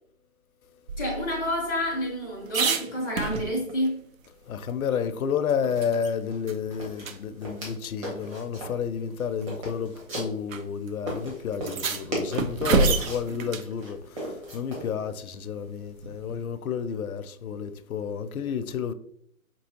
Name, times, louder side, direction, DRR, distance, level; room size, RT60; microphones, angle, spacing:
sound 1, 0.9-3.9 4.2-4.3 4.7-6.1 6.5-6.6 7.0-7.2 8.2-8.3 9.2-9.5 10.5-10.6 10.9-11.0 11.5-13.7 16.0-16.5, right 4 dB, 65° right, 0.6 m, -29 dB
voice 1, 1.0-4.0, left 1 dB, 5° right, 0.6 m, -29 dB
voice 2, 4.5-18.9, left 7 dB, 80° left, 0.6 m, -31 dB
sound 2, 5.7-5.9 6.2-6.4 6.7-7.7 8.0-8.8 9.2-10.6 11.1-13.3 13.8-14.9, equal, 20° right, 1.1 m, -36 dB
5.3 x 2.8 x 2.8 m
hypercardioid pair, 150°, 42 cm